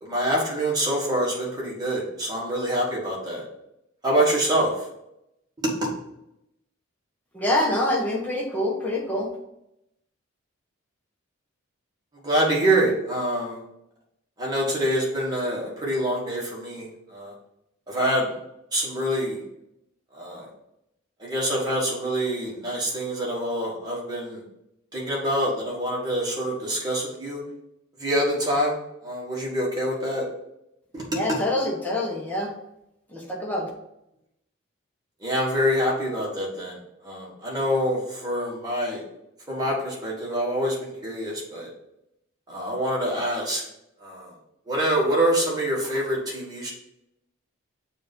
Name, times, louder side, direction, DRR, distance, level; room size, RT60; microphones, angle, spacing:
voice 1, 0.0-3.4 4.0-4.7 5.6-5.9 12.2-13.6 14.4-16.8 17.1-17.3 17.9-18.3 18.7-19.4 20.1-20.5 21.2-24.4 24.9-27.4 28.0-28.8 29.0-30.2 30.9-31.0 35.2-36.8 37.0-39.0 39.5-41.7 42.5-43.6 44.0-44.3 44.7-46.7, right 1 dB, 20° right, -4 dB, 1.5 m, -25 dB
voice 2, 7.3-9.3 31.1-32.5 33.1-33.7, left 1 dB, 10° left, -3 dB, 1.1 m, -26 dB
6.7 x 2.7 x 5.3 m, 0.83 s
head